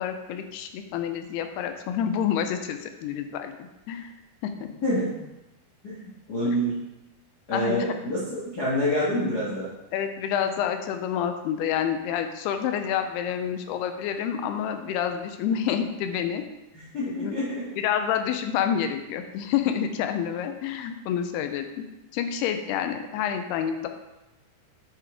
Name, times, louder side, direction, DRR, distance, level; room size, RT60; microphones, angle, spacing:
voice 1, 0.0-4.1 4.6-4.7 6.5-6.6 7.5-8.0 9.9-16.4 17.1-17.4 17.8-21.8 22.1-23.9, left 8 dB, 85° left, 7 dB, 2.6 m, -28 dB
voice 2, 4.8-5.1 5.8-6.7 7.5-9.7 16.7-17.7, equal, 60° left, -7 dB, 1.0 m, -27 dB
8.2 x 7.5 x 3.6 m, 0.98 s
omnidirectional pair, 4.7 m